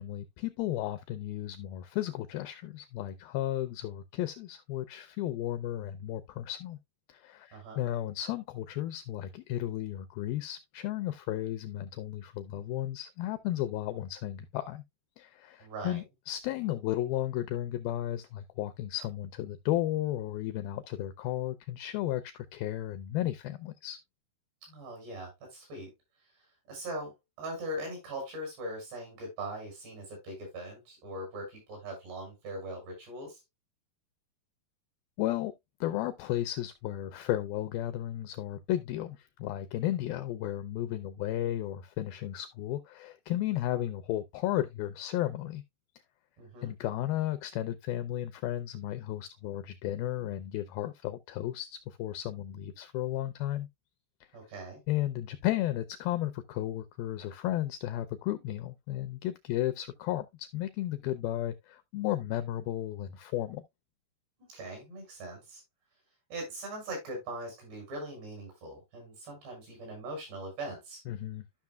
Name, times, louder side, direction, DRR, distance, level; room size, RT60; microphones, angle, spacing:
voice 1, 0.0-6.8 7.1-14.8 15.2-24.0 35.2-35.5 35.8-45.6 46.6-53.7 54.2-54.3 54.9-63.6 71.1-71.4, left 13 dB, 85° left, 2.1 m, -34 dB
voice 2, 7.5-7.8 15.6-16.0 24.7-25.9 26.7-27.1 27.4-33.4 46.4-46.7 54.3-54.8 64.5-65.6 66.3-71.0, right 1 dB, 80° right, 7.9 m, -40 dB
13.0 x 5.9 x 2.2 m
omnidirectional pair, 4.8 m